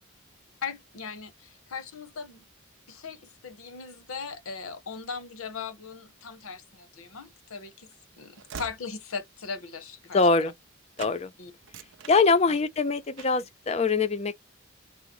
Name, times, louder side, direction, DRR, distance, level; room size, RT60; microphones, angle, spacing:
voice 1, 0.6-2.4 2.9-10.5 11.4-11.5 12.5-12.6, left 5 dB, 90° left, 0.8 m, -39 dB
Train / Slam, 7.1-10.7 11.0-11.2 11.6-12.8 13.2-13.5, right 6 dB, 60° right, 0.5 m, -46 dB
voice 2, 10.1-10.5 11.0-11.3 12.1-14.4, left 4 dB, 30° left, 0.4 m, -23 dB
3.6 x 2.0 x 3.0 m
head